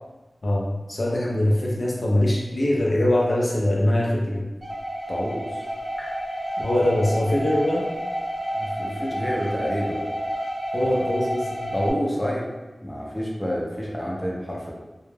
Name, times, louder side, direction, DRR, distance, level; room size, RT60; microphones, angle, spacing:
voice 1, 0.4-4.5 6.0-6.1 6.6-7.9 10.7-11.7, left 1 dB, 60° left, -4 dB, 0.5 m, -22 dB
sound 1, 4.6-11.9, equal, 25° right, 0.7 m, -30 dB
voice 2, 5.1-5.6 8.6-10.0 10.8-11.0 11.7-12.5 12.8-14.7, equal, 15° left, -3 dB, 0.6 m, -28 dB
2.2 x 2.0 x 3.1 m, 1.1 s
wide cardioid pair, 55°, 0 cm